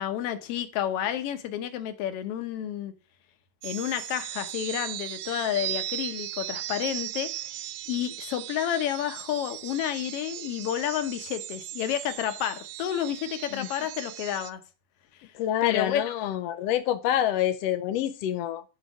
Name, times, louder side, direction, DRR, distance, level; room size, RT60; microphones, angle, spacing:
voice 1, 0.0-2.9 3.6-14.6 15.6-16.1, left 10 dB, 65° left, 1.6 m, -30 dB
sound 1, 3.6-14.5, right 14 dB, 80° right, 2.0 m, -37 dB
voice 2, 15.3-18.6, left 11 dB, 85° left, 1.4 m, -27 dB
11.0 x 4.1 x 6.3 m
omnidirectional pair, 3.6 m